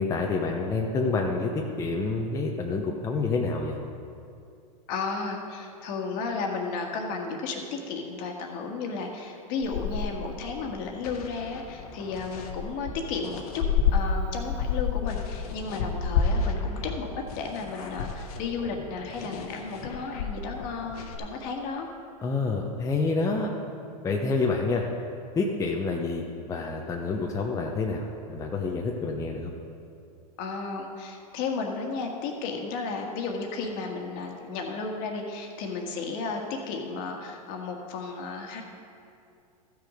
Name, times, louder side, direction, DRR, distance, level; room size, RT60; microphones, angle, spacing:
voice 1, 0.0-3.8 22.2-23.5 24.0-24.8 25.3-29.5, left 3 dB, 15° left, 0 dB, 0.8 m, -28 dB
voice 2, 4.9-13.6 13.9-21.9 30.4-38.6, left 4 dB, 50° left, 2 dB, 1.6 m, -33 dB
sound 1, 9.6-13.9 14.3-21.2, left 6 dB, 70° left, 1.3 m, -31 dB
14.0 x 6.4 x 5.0 m, 2.5 s
hypercardioid pair, 125°, 20 cm